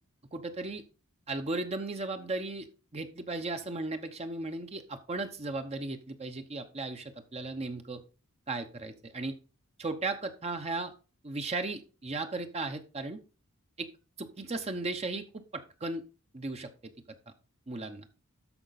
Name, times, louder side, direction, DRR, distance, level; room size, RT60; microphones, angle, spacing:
voice 1, 0.3-0.8 1.3-2.7 2.9-8.0 8.5-9.4 9.8-10.9 11.2-13.2 13.8-13.9 14.2-16.0 16.3-16.9 17.3-17.4 17.7-18.1, right 2 dB, 30° right, 7 dB, 0.8 m, -36 dB
13.0 x 5.1 x 4.1 m, 0.33 s
head